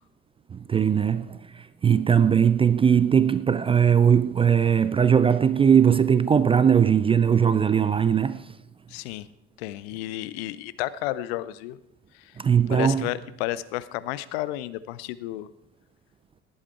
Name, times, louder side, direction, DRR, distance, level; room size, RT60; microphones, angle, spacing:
voice 1, 0.5-8.5 12.4-13.1, right 7 dB, 15° right, 0.4 m, -20 dB
voice 2, 8.9-9.3 9.6-11.8 12.7-15.5, left 15 dB, 60° left, 0.7 m, -32 dB
18.5 x 8.6 x 4.5 m
figure-of-eight pair, 55°, 35 cm